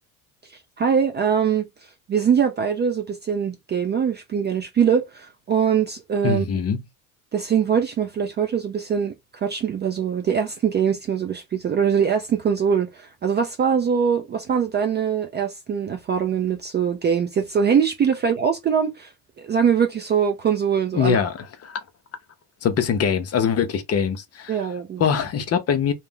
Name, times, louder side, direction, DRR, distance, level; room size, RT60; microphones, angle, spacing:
voice 1, 0.8-1.7 2.1-6.5 7.3-9.1 9.4-19.1 19.4-21.2 24.5-25.0, right 7 dB, 25° right, 0.3 m, -22 dB
voice 2, 6.2-6.8 20.9-21.4 21.6-21.8 22.6-24.6 25.0-25.9, left 7 dB, 35° left, 0.6 m, -22 dB
2.4 x 2.2 x 3.6 m
supercardioid pair, 80°, 44 cm